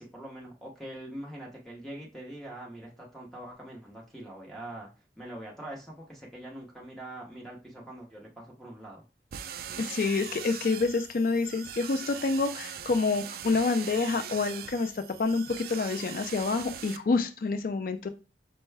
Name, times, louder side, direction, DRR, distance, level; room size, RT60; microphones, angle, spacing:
voice 1, 0.0-4.9 5.2-9.0, right 1 dB, ahead, 0.8 m, -43 dB
sound 1, 9.3-17.0, right 9 dB, 55° right, 0.3 m, -41 dB
voice 2, 9.8-18.1, left 4 dB, 50° left, 0.4 m, -28 dB
5.3 x 2.2 x 3.3 m
head